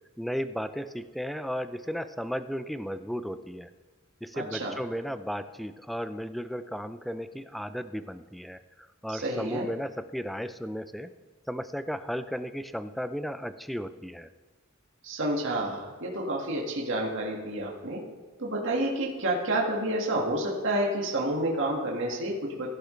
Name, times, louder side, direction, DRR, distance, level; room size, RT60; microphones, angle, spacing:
voice 1, 0.2-3.7 4.2-8.6 9.0-11.1 11.5-14.3, equal, ahead, 11 dB, 0.4 m, -34 dB
voice 2, 4.3-4.8 9.1-9.7 15.0-18.0 18.4-22.7, right 1 dB, 60° right, -2 dB, 1.9 m, -29 dB
16.5 x 10.5 x 3.3 m, 1.4 s
head